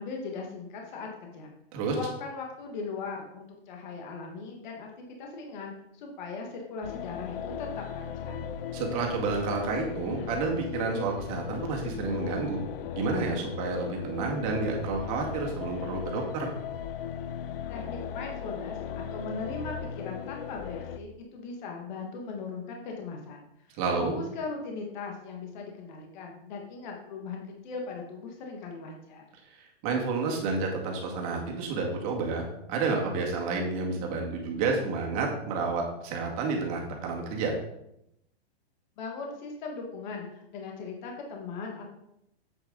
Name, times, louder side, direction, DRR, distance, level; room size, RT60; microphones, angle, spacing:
voice 1, 0.0-1.5 1.9-4.9 5.2-8.5 17.7-23.4 23.7-29.2 39.0-41.8, left 4 dB, 45° left, 1 dB, 1.7 m, -39 dB
sound 1, 6.8-21.0, left 8 dB, 60° left, 0.7 m, -37 dB
voice 2, 8.7-12.6 12.9-16.5 23.8-24.1 29.5-37.5, right 4 dB, 35° right, 0 dB, 2.0 m, -30 dB
8.2 x 7.3 x 3.9 m, 0.80 s
hypercardioid pair, 160°, 31 cm